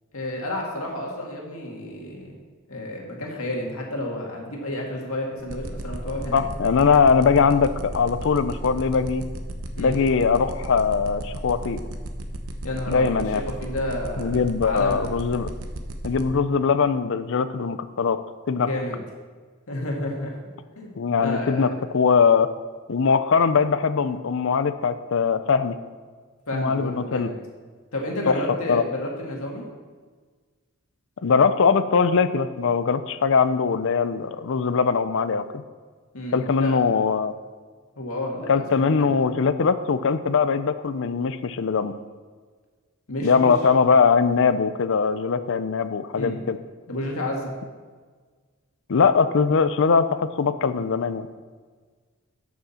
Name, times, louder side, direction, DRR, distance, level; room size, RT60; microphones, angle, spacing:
voice 1, 0.1-2.4 2.7-6.4 9.8-9.9 12.6-15.1 18.7-19.0 19.7-20.4 20.8-20.9 21.2-21.7 26.5-27.3 27.9-29.7 36.1-36.8 38.0-39.1 43.1-43.5 46.1-46.5 46.9-47.5, left 1 dB, 80° left, -1 dB, 2.0 m, -31 dB
sound 1, 5.4-16.2, right 1 dB, 70° right, 0.9 m, -34 dB
voice 2, 6.3-9.2 9.8-11.8 12.9-13.4 14.2-15.5 16.0-18.2 18.5-18.7 21.0-22.5 22.9-25.8 26.5-27.3 28.3-28.4 28.7-28.8 31.2-35.6 36.3-37.3 38.5-41.9 43.2-46.6 48.9-51.3, left 5 dB, 60° left, 12 dB, 0.5 m, -21 dB
12.5 x 6.3 x 4.3 m, 1.5 s
head